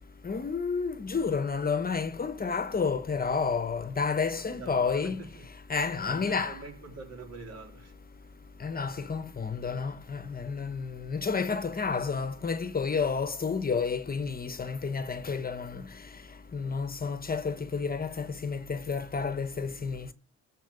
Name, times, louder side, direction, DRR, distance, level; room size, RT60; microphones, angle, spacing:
voice 1, 0.2-5.2 5.7-6.6 8.6-15.8 16.5-20.1, left 5 dB, 30° left, 1.0 m, -30 dB
voice 2, 4.4-5.5 5.8-7.9, right 4 dB, 55° right, 3.9 m, -45 dB
13.0 x 4.6 x 8.3 m
cardioid pair, 90°, 30 cm